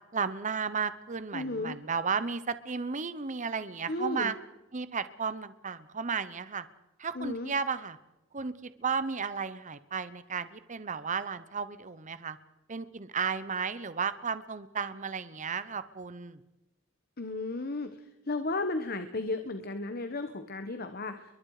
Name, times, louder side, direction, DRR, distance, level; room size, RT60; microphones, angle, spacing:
voice 1, 0.1-4.4 4.7-6.6 7.0-8.0 8.3-12.4 12.7-16.4, right 5 dB, 40° right, 14 dB, 0.9 m, -34 dB
voice 2, 1.3-1.8 3.9-4.3 7.1-7.5 17.2-17.9 18.3-21.2, left 2 dB, 50° left, 8 dB, 1.3 m, -34 dB
29.0 x 23.0 x 4.9 m, 0.98 s
head